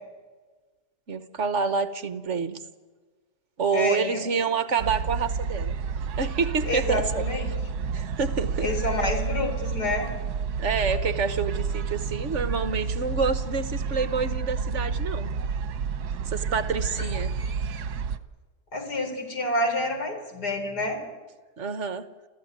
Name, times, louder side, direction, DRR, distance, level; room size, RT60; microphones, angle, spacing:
voice 1, 1.1-2.6 3.6-5.7 6.2-7.2 7.9-8.7 10.6-15.3 16.2-17.3 21.6-22.0, right 5 dB, 50° right, 12 dB, 1.3 m, -27 dB
voice 2, 3.7-4.2 6.7-7.5 8.6-10.1 18.7-21.0, left 2 dB, 80° left, 4 dB, 4.6 m, -28 dB
sound 1, 4.8-18.2, right 5 dB, 75° right, 1.5 m, -30 dB
28.5 x 15.0 x 9.4 m, 1.3 s
omnidirectional pair, 1.7 m